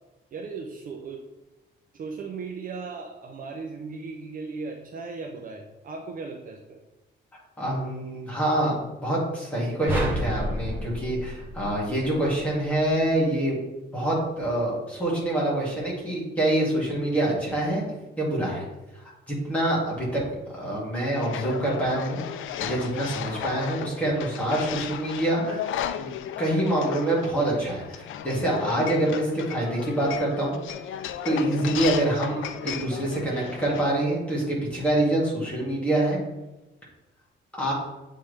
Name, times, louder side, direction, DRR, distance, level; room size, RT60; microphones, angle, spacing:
voice 1, 0.3-1.2 1.9-6.8 33.3-33.6, right 4 dB, 45° right, 2 dB, 0.5 m, -37 dB
voice 2, 7.6-13.6 13.9-17.8 18.2-18.7 18.9-20.2 20.5-22.2 22.6-25.7 26.0-30.6 31.2-36.2 37.6-37.7, right 1 dB, 5° left, -6 dB, 2.0 m, -26 dB
sound 1, 9.9-12.3, equal, 10° right, 0.8 m, -30 dB
sound 2, 21.1-33.8, left 10 dB, 85° left, 0.4 m, -35 dB
8.6 x 3.6 x 3.2 m, 1.0 s
cardioid pair, 170°, 20 cm